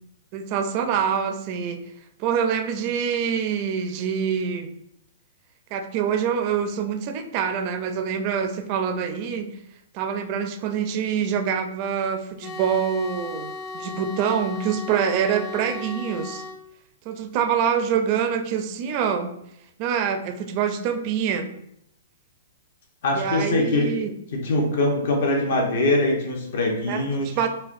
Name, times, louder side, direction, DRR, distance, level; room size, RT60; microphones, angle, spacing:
voice 1, 0.3-1.8 2.2-4.7 5.7-9.5 9.9-16.4 17.1-19.4 19.8-21.5 23.1-24.1 26.9-27.5, right 7 dB, 40° right, 7 dB, 0.4 m, -25 dB
sound 1, 12.4-16.6, left 3 dB, 45° left, 0.5 m, -36 dB
voice 2, 23.0-23.9 24.3-27.3, left 2 dB, 65° left, 1 dB, 0.9 m, -22 dB
4.2 x 2.2 x 2.5 m, 0.77 s
hypercardioid pair, 135°, 0 cm